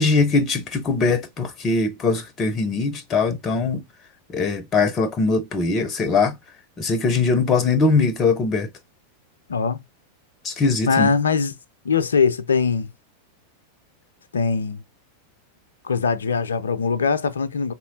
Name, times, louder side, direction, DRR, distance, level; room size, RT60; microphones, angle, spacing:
voice 1, 0.0-3.8 4.3-6.3 6.8-8.7 10.4-11.1, left 4 dB, 25° left, 0.6 m, -21 dB
voice 2, 10.9-11.5 11.8-12.9 14.3-14.8 15.8-17.7, left 5 dB, 70° left, 0.5 m, -21 dB
4.2 x 3.0 x 2.6 m
figure-of-eight pair, 90°, 0 cm